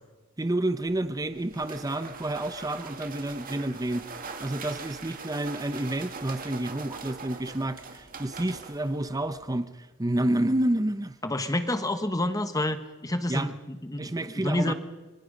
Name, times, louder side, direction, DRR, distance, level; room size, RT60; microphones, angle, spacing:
voice 1, 0.4-4.1 4.4-11.2 13.3-13.5 14.0-14.7, right 1 dB, 20° right, 10 dB, 0.7 m, -29 dB
sound 1, 0.8-9.6, right 4 dB, 45° right, 2.1 m, -42 dB
voice 2, 11.2-14.7, left 1 dB, 20° left, 9 dB, 1.3 m, -29 dB
25.5 x 23.0 x 5.2 m, 1.2 s
head